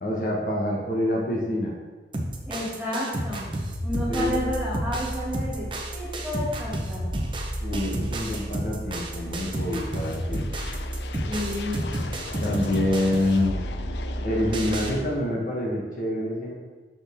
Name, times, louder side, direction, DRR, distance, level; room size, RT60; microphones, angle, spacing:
voice 1, 0.0-1.7 4.1-4.4 7.6-10.4 12.4-13.6 14.2-16.5, left 1 dB, 50° left, -2 dB, 1.0 m, -26 dB
sound 1, 2.1-14.9, right 1 dB, 30° right, 0.8 m, -31 dB
voice 2, 2.5-3.6 3.8-7.1 11.3-11.8, left 1 dB, 5° right, -7 dB, 2.1 m, -31 dB
sound 2, 9.3-15.0, left 4 dB, 70° left, 0.5 m, -40 dB
6.2 x 6.1 x 3.5 m, 1.3 s
head